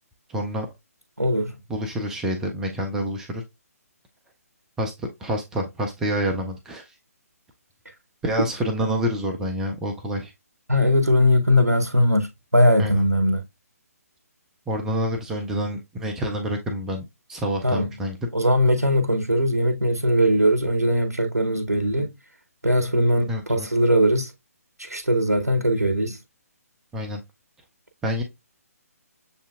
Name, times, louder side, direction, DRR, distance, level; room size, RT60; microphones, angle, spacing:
voice 1, 0.3-0.7 1.7-3.4 4.8-6.9 8.2-10.3 12.8-13.0 14.7-18.2 23.3-23.7 26.9-27.2 28.0-28.2, equal, 5° right, 0.3 m, -27 dB
voice 2, 1.2-1.5 8.4-8.5 10.7-13.4 17.6-17.9 18.3-22.1 22.6-24.3 24.8-26.2, equal, 90° right, 0.8 m, -20 dB
6.8 x 2.7 x 2.4 m
figure-of-eight pair, 140°, 9 cm